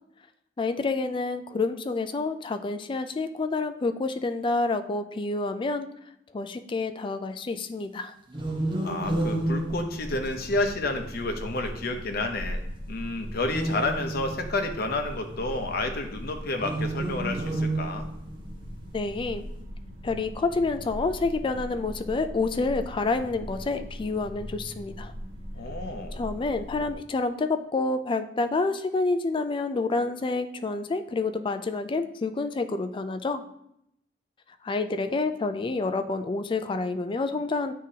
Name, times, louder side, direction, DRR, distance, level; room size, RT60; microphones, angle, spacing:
voice 1, 0.6-5.9 6.3-8.1 18.9-19.5 20.0-25.1 26.1-33.4 34.6-37.7, left 3 dB, 25° left, 9 dB, 0.3 m, -28 dB
sound 1, 8.3-10.6 13.4-14.7 16.5-18.4, right 1 dB, 25° right, 0.9 m, -30 dB
voice 2, 8.8-12.6 12.9-18.1 25.5-26.2, left 2 dB, 55° left, 5 dB, 0.7 m, -30 dB
sound 2, 9.0-27.0, equal, 70° right, 1.5 m, -40 dB
9.3 x 3.6 x 2.8 m, 0.79 s
head